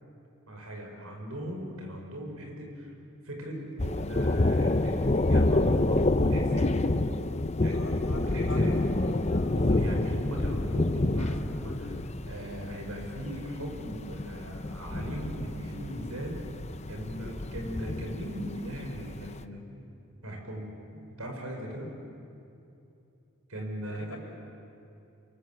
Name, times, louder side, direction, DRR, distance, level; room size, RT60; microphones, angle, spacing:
voice 1, 0.5-2.9 3.2-6.8 7.6-8.8 9.5-12.0 12.2-16.4 16.9-19.9 20.2-21.9 23.5-24.2, equal, 85° right, 1 dB, 6.0 m, -38 dB
Thunder, 3.8-19.3, left 2 dB, 30° left, 0.7 m, -28 dB
voice 2, 7.7-9.9 23.8-24.2, left 2 dB, 75° left, -1 dB, 6.0 m, -45 dB
29.0 x 23.5 x 7.8 m, 2.7 s
head